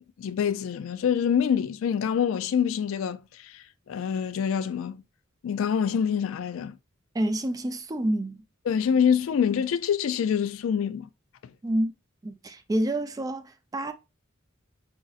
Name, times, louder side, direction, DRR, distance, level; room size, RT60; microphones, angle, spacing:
voice 1, 0.2-5.0 5.4-6.8 8.7-11.1 11.4-11.5, left 7 dB, 75° left, 0.3 m, -26 dB
voice 2, 7.1-8.4 11.6-11.9 12.2-13.9, right 1 dB, 20° right, 0.3 m, -28 dB
4.9 x 2.6 x 2.4 m
head